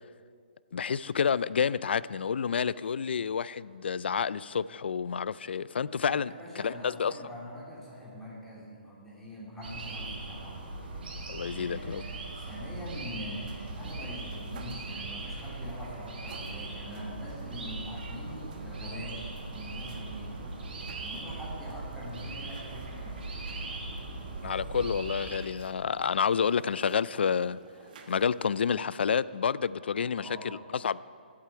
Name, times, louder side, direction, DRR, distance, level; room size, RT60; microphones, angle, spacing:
voice 1, 0.7-7.1 11.3-12.0 24.4-27.6 28.1-31.0, left 6 dB, 80° left, 19 dB, 0.3 m, -29 dB
voice 2, 6.1-11.1 11.5-19.2 19.5-20.6 21.0-23.6 30.1-30.5, equal, 5° left, -7 dB, 3.0 m, -44 dB
sound 1, 9.6-25.4, right 2 dB, 65° right, 3.6 m, -39 dB
sound 2, 13.4-28.8, right 4 dB, 50° right, 1.4 m, -54 dB
8.4 x 7.6 x 8.9 m, 2.2 s
hypercardioid pair, 155°, 6 cm